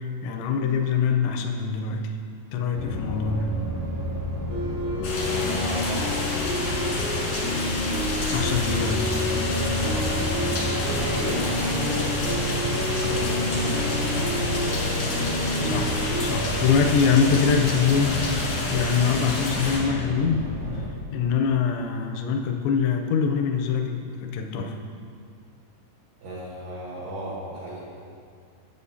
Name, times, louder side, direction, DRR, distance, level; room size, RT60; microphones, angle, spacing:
voice 1, 0.0-2.2 2.5-3.6 8.3-9.1 15.6-20.5 20.7-20.9 21.1-24.8, left 6 dB, 85° left, 3 dB, 2.6 m, -24 dB
sound 1, 2.7-20.9, left 1 dB, 60° right, 2.3 m, -30 dB
sound 2, 4.5-16.3, left 1 dB, 45° right, 0.9 m, -31 dB
sound 3, 5.0-19.8, left 2 dB, 70° left, 1.6 m, -30 dB
voice 2, 5.2-7.4 9.8-10.4 10.8-15.0 26.2-28.0, right 1 dB, 80° right, -9 dB, 1.9 m, -35 dB
11.5 x 8.0 x 2.7 m, 2.3 s
omnidirectional pair, 5.8 m